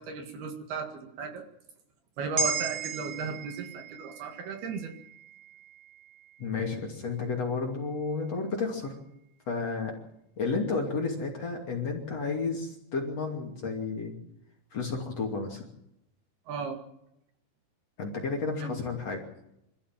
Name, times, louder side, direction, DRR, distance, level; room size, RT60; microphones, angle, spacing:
voice 1, 0.0-1.5 2.2-4.9 16.5-16.8 18.6-18.8, right 5 dB, 65° right, 4 dB, 3.6 m, -35 dB
sound 1, 2.4-6.9 7.3-7.4, right 4 dB, 35° right, 4.0 m, -36 dB
voice 2, 6.4-9.0 9.5-9.9 10.4-14.2 14.7-15.6 18.0-19.2, left 4 dB, 40° left, 1 dB, 3.3 m, -32 dB
26.0 x 14.5 x 7.5 m, 0.82 s
omnidirectional pair, 5.3 m